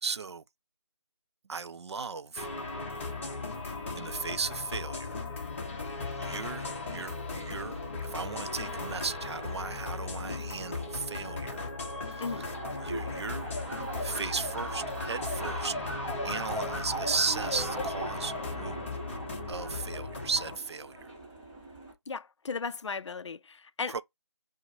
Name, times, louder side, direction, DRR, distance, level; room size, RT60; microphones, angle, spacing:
voice 1, 0.0-0.4 1.5-2.5 4.0-5.2 6.2-11.6 12.1-12.4 12.8-13.5 14.0-15.8 16.2-18.8 19.5-21.1 23.9-24.0, right 5 dB, 60° right, 0.4 m, -36 dB
sound 1, 2.4-20.6, left 3 dB, 25° left, 0.8 m, -37 dB
sound 2, 12.3-21.9, right 1 dB, 15° right, 1.0 m, -39 dB
voice 2, 22.1-24.0, left 5 dB, 70° left, 0.4 m, -36 dB
4.4 x 2.1 x 2.6 m
figure-of-eight pair, 165°, 16 cm